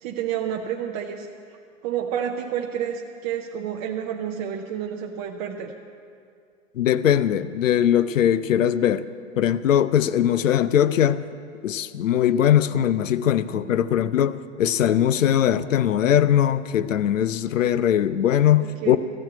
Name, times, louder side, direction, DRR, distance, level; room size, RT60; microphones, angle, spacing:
voice 1, 0.0-1.3 1.8-5.7 12.7-12.8 13.5-13.7 18.6-19.0, right 9 dB, 30° right, 0.6 m, -30 dB
voice 2, 6.8-9.1 9.4-11.2 11.6-19.0, left 10 dB, 75° left, 0.6 m, -20 dB
14.0 x 7.3 x 9.0 m
hypercardioid pair, 125°, 39 cm